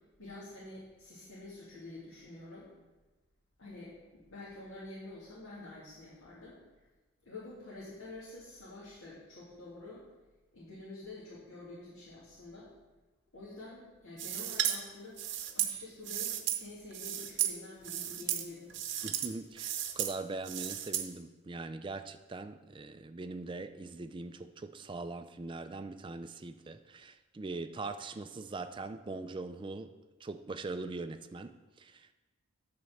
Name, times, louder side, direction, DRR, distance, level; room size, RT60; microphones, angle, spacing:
voice 1, 0.2-2.7 3.6-6.9 7.3-10.0 10.5-12.7 13.3-15.2 15.5-18.8, left 2 dB, 70° left, 2.3 m, -48 dB
sound 1, 14.2-14.8 15.2-16.6 16.9-17.6 17.8-18.4 18.7-19.3 19.6-20.1 20.5-21.0, right 11 dB, 55° right, 0.8 m, -34 dB
voice 2, 19.0-32.1, right 3 dB, 20° right, 0.3 m, -42 dB
9.4 x 4.3 x 7.2 m
head